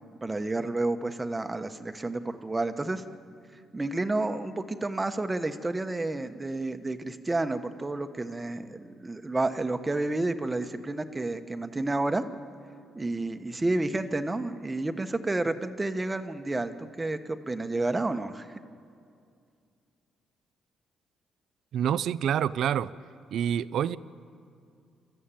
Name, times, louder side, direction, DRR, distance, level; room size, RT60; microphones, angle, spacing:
voice 1, 0.2-3.0 3.7-12.2 12.9-18.6, right 2 dB, 20° right, 8 dB, 1.2 m, -30 dB
voice 2, 21.7-22.9 23.3-24.0, right 9 dB, 70° right, 17 dB, 0.5 m, -27 dB
26.5 x 14.0 x 9.1 m, 2.3 s
cardioid pair, 90°, 0 cm